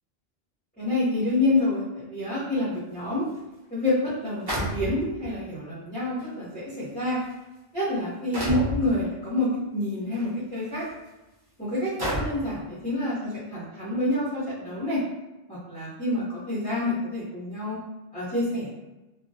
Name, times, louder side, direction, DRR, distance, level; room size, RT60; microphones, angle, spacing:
voice 1, 0.8-3.2 3.7-7.2 7.7-10.8 11.6-15.0 15.5-17.8 18.1-18.7, left 2 dB, 10° left, -12 dB, 0.7 m, -28 dB
sound 1, 3.4-3.5 4.5-5.3 6.2-6.3 7.1-7.3 8.3-8.8 10.1-10.3 10.9-11.0 12.0-12.5, equal, 25° right, 0.7 m, -29 dB
2.3 x 2.1 x 2.6 m, 1.0 s
omnidirectional pair, 1.1 m